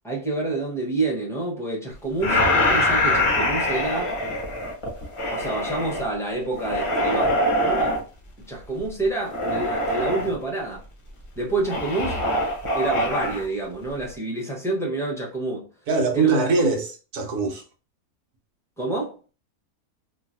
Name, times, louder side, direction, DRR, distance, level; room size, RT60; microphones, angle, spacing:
voice 1, 0.0-4.1 5.3-8.0 8.5-10.8 11.4-12.2 12.7-15.7 16.1-16.4 18.8-19.2, right 2 dB, 5° left, 0.7 m, -28 dB
sound 1, 2.2-6.0 6.6-8.0 9.3-10.3 11.7-13.4, left 1 dB, 35° left, 0.5 m, -23 dB
voice 2, 15.9-17.6, right 3 dB, 80° right, 1.3 m, -23 dB
3.0 x 2.6 x 2.6 m
omnidirectional pair, 1.6 m